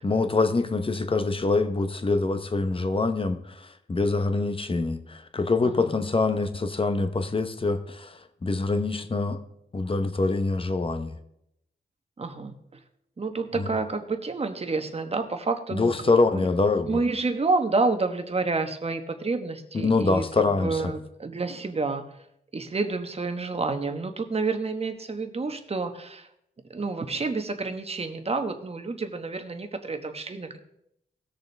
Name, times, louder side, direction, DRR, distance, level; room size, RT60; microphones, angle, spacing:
voice 1, 0.0-9.4 9.7-11.2 13.5-13.7 15.7-17.0 19.7-20.9, left 3 dB, 30° left, 8 dB, 0.9 m, -25 dB
voice 2, 12.2-12.5 13.2-15.9 16.3-16.5 16.9-20.2 20.6-22.1 22.5-26.2 26.7-30.6, right 3 dB, 35° right, 7 dB, 1.2 m, -29 dB
18.0 x 6.7 x 3.4 m, 0.78 s
wide cardioid pair, 85°, 18 cm